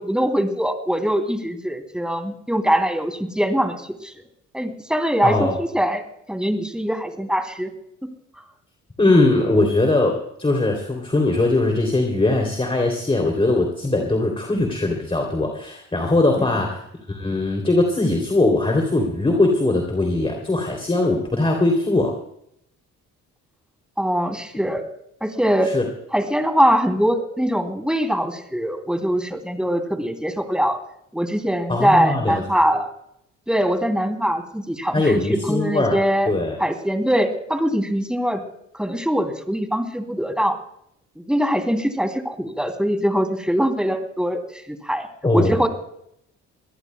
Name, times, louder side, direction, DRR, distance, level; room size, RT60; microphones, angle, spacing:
voice 1, 0.0-3.7 4.0-4.1 4.5-6.0 6.3-7.7 8.0-8.1 24.0-24.8 25.2-25.7 26.1-30.8 31.1-32.9 33.5-36.3 36.6-38.4 38.7-40.6 41.2-45.7, equal, 5° right, 5 dB, 2.7 m, -22 dB
voice 2, 5.2-5.5 9.0-16.8 17.1-22.1 25.6-25.8 31.7-32.4 34.9-36.0 36.3-36.6 45.2-45.6, left 2 dB, 20° left, 2 dB, 2.9 m, -20 dB
24.5 x 17.5 x 2.2 m, 0.73 s
cardioid pair, 90°, 30 cm